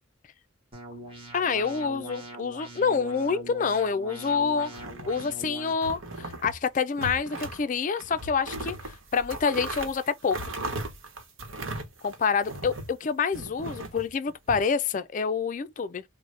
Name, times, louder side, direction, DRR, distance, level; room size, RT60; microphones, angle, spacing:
sound 1, 0.7-5.7, right 1 dB, 25° right, 0.9 m, -43 dB
voice 1, 1.3-4.7 5.0-10.5 12.0-16.0, left 5 dB, 40° left, 0.3 m, -27 dB
sound 2, 4.7-5.4 5.8-6.6 6.9-7.6 8.0-12.9 13.3-14.6, right 2 dB, 75° right, 1.0 m, -37 dB
3.9 x 2.1 x 3.2 m
head